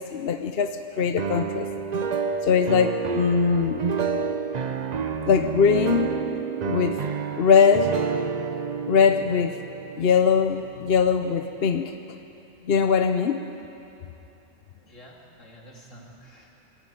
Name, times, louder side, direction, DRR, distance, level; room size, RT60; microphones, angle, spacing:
voice 1, 0.0-1.7 2.4-3.8 5.3-6.1 6.6-7.0 7.4-7.9 8.9-9.6 10.0-11.9 12.7-13.4, left 6 dB, 55° left, 7 dB, 0.9 m, -21 dB
sound 1, 1.2-11.1, right 6 dB, 45° right, 0.6 m, -29 dB
voice 2, 14.7-16.6, equal, 75° left, -2 dB, 3.3 m, -49 dB
21.0 x 14.5 x 9.0 m, 2.9 s
omnidirectional pair, 1.3 m